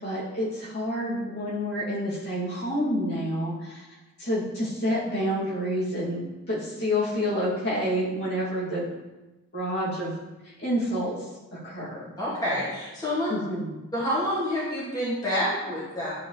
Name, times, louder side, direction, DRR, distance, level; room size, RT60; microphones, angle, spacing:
voice 1, 0.0-3.8 4.2-6.2 6.5-8.9 9.5-10.1 10.6-11.1 11.6-12.1 13.3-13.7, equal, 50° left, -9 dB, 2.9 m, -28 dB
voice 2, 12.2-13.3 13.9-16.2, equal, 20° left, -10 dB, 2.4 m, -28 dB
11.5 x 4.7 x 3.4 m, 1.1 s
head